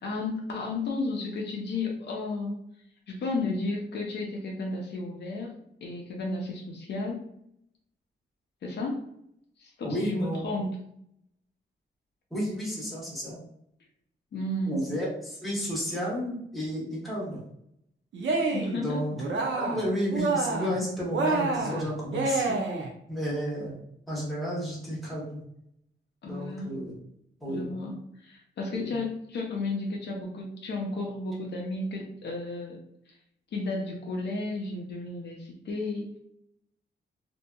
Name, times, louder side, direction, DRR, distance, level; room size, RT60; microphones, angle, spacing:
voice 1, 0.0-2.6 3.1-5.5 5.8-7.3 8.6-9.0 9.6-10.8 14.3-14.9 18.5-19.0 26.2-27.0 27.5-32.8 33.5-36.2, left 2 dB, 60° left, -1 dB, 0.5 m, -33 dB
voice 2, 9.8-10.4 12.3-13.4 14.7-17.4 18.8-19.2 19.5-22.6 23.1-23.8 24.1-25.4 26.2-26.9 27.4-27.7 28.7-28.9, equal, ahead, -7 dB, 0.9 m, -32 dB
Cheering, 18.1-18.8 19.2-19.9 20.1-20.8 21.1-22.9, right 3 dB, 75° right, 0.6 m, -28 dB
2.7 x 2.6 x 2.2 m, 0.74 s
wide cardioid pair, 160°, 20 cm